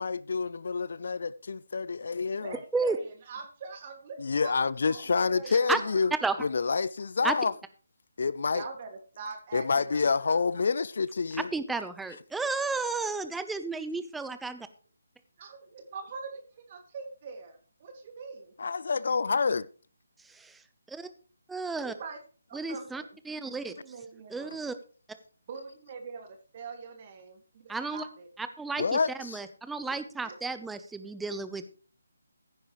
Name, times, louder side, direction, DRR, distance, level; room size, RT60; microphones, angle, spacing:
voice 1, 0.0-2.6 4.2-6.1 6.4-7.5 8.2-8.6 9.5-11.5 18.6-19.7 28.8-29.4, left 4 dB, 60° left, 0.5 m, -28 dB
voice 2, 2.3-4.5 4.9-6.0 8.5-10.4 15.4-16.4 16.7-18.4 21.8-22.2 22.5-23.1 23.8-24.6 25.5-28.3 29.9-30.4, right 4 dB, 35° right, 2.6 m, -43 dB
voice 3, 11.4-14.7 20.3-20.6 20.9-21.1 21.5-21.9 22.5-23.7 24.3-24.8 27.7-28.1 28.4-31.7, right 3 dB, 5° right, 0.9 m, -32 dB
15.5 x 10.0 x 3.2 m
figure-of-eight pair, 150°, 0 cm